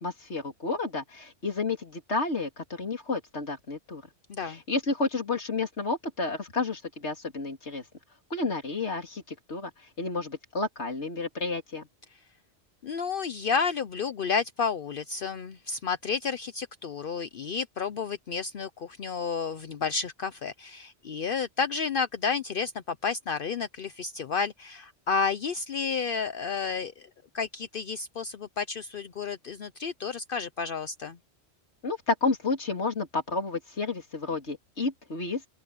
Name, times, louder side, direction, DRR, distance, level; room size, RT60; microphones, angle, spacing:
voice 1, 0.0-4.0 4.4-7.8 8.3-9.7 10.0-11.9 31.8-35.4, left 3 dB, 85° left, 3.3 m, -31 dB
voice 2, 12.8-27.1 27.3-31.2, left 5 dB, 55° left, 0.8 m, -31 dB
open air
omnidirectional pair, 1.1 m